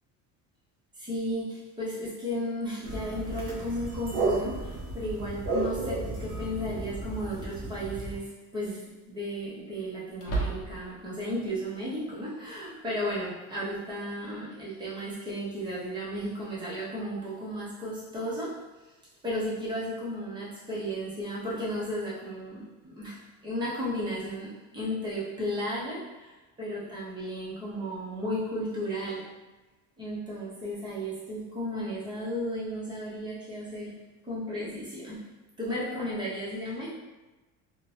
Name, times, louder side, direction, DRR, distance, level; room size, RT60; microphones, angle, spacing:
voice 1, 1.0-18.6 19.2-29.3 30.0-35.3 35.6-36.9, equal, 15° right, -7 dB, 0.6 m, -34 dB
sound 1, 2.8-8.2, right 2 dB, 50° right, 0.7 m, -33 dB
sound 2, 10.2-11.0, right 4 dB, 45° left, 0.7 m, -33 dB
2.6 x 2.1 x 3.1 m, 1.2 s
cardioid pair, 175°, 35 cm